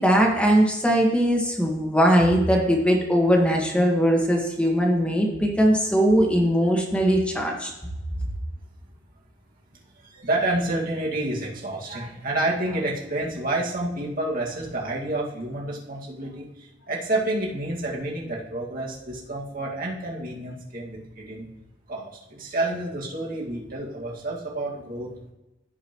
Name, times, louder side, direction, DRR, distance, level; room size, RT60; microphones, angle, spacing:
voice 1, 0.0-7.7, equal, 5° left, 0 dB, 1.7 m, -20 dB
voice 2, 10.0-21.5 21.9-25.3, right 2 dB, 50° right, -3 dB, 2.0 m, -29 dB
15.5 x 5.5 x 3.1 m, 0.97 s
head